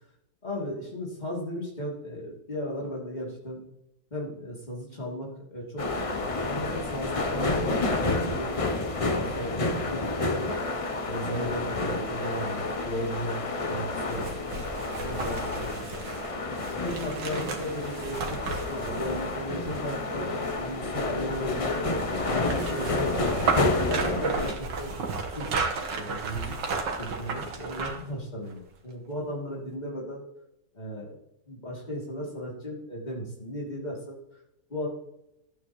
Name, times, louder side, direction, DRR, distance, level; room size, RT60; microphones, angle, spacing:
voice 1, 0.4-3.6 4.1-10.5 11.0-14.3 15.0-15.7 16.6-21.8 22.2-23.2 23.6-25.6 25.9-26.6 27.0-30.2 30.7-31.2 31.5-34.2 34.7-34.9, equal, 25° left, -3 dB, 3.0 m, -36 dB
sound 1, 5.8-24.5, left 2 dB, 60° left, 0.3 m, -30 dB
sound 2, 14.0-20.2 21.8-28.1 28.5-28.6, right 4 dB, 90° right, 2.0 m, -33 dB
12.0 x 8.4 x 3.1 m, 0.84 s
omnidirectional pair, 1.9 m